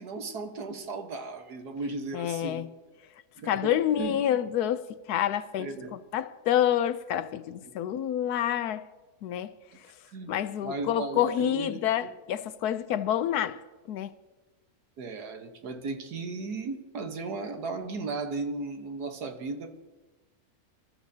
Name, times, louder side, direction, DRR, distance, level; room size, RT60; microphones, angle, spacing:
voice 1, 0.0-2.7 3.4-3.7 4.0-4.2 5.6-5.9 7.6-7.7 10.1-10.3 10.6-12.1 15.0-19.7, right 3 dB, 90° right, 1.8 m, -36 dB
voice 2, 2.1-2.7 3.5-4.8 5.1-8.8 9.2-9.5 10.3-13.6 13.9-14.1, left 10 dB, 80° left, 1.2 m, -28 dB
26.0 x 12.5 x 2.8 m
omnidirectional pair, 1.7 m